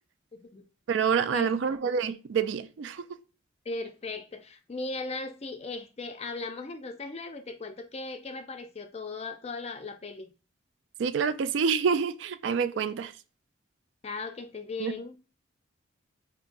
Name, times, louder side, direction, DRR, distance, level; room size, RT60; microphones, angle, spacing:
voice 1, 0.3-0.7 1.3-1.7 3.7-10.3 14.0-15.2, left 3 dB, 30° left, 0.4 m, -38 dB
voice 2, 0.9-3.1 11.0-13.1 14.8-15.2, right 6 dB, 65° right, 0.3 m, -27 dB
5.1 x 2.7 x 2.6 m
head